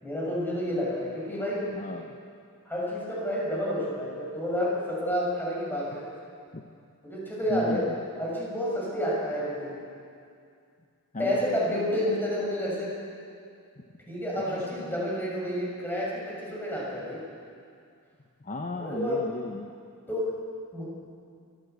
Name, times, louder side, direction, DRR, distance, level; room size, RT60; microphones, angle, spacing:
voice 1, 0.0-1.6 2.6-6.0 7.0-7.8 8.2-9.8 11.2-12.9 14.1-17.2 18.8-19.2 20.1-20.3 20.7-20.8, equal, 10° left, -4 dB, 6.8 m, -30 dB
voice 2, 1.7-2.2 6.5-6.6 7.5-8.0 11.1-11.4 13.8-13.9 14.6-14.9 18.4-19.7, left 1 dB, 35° left, 3 dB, 1.0 m, -35 dB
25.0 x 15.0 x 8.2 m, 2.3 s
head